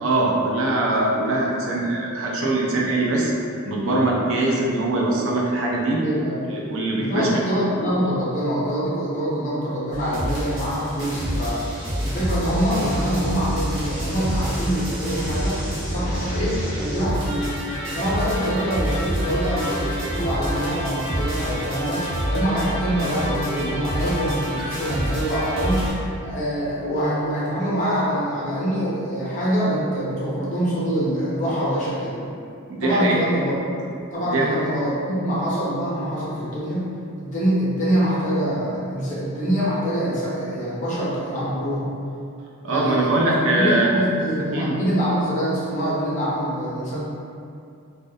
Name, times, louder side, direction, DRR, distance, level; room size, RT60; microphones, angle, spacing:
voice 1, 0.0-3.3 3.7-6.0 6.5-7.3 32.7-33.2 34.2-34.5 42.6-43.9 44.5-44.7, right 2 dB, 65° right, -3 dB, 0.4 m, -22 dB
voice 2, 6.0-6.6 6.9-11.6 12.0-17.5 17.9-32.3 32.8-33.5 34.1-41.9 42.7-47.0, equal, 35° left, -9 dB, 0.6 m, -25 dB
sound 1, 9.9-25.9, equal, 45° right, 0.9 m, -27 dB
2.3 x 2.1 x 2.7 m, 2.5 s
head